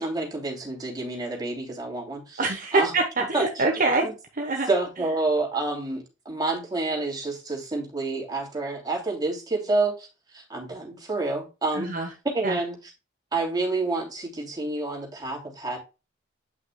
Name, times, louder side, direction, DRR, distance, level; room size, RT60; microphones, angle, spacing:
voice 1, 0.0-2.4 2.7-2.9 3.3-3.7 4.0-4.1 4.7-10.1 10.3-11.9 12.3-12.8 13.3-15.8, right 3 dB, 20° right, 3.0 m, -28 dB
voice 2, 2.4-4.1 4.4-4.7 11.7-12.1 12.4-12.6, right 3 dB, 45° right, 1.1 m, -24 dB
9.4 x 5.8 x 2.3 m
head